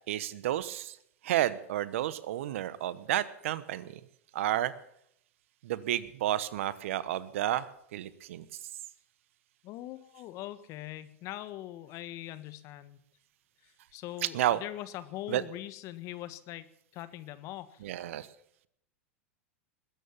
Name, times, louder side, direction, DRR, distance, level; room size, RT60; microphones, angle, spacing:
voice 1, 0.1-1.0 1.2-4.0 4.3-4.7 5.6-8.4 14.2-14.6 15.3-15.4 17.8-18.3, right 13 dB, 70° right, 17 dB, 1.1 m, -31 dB
voice 2, 9.6-13.0 13.6-16.7 16.9-17.9, left 14 dB, 45° left, 13 dB, 1.5 m, -42 dB
21.0 x 9.2 x 7.2 m, 0.71 s
hypercardioid pair, 100°, 7 cm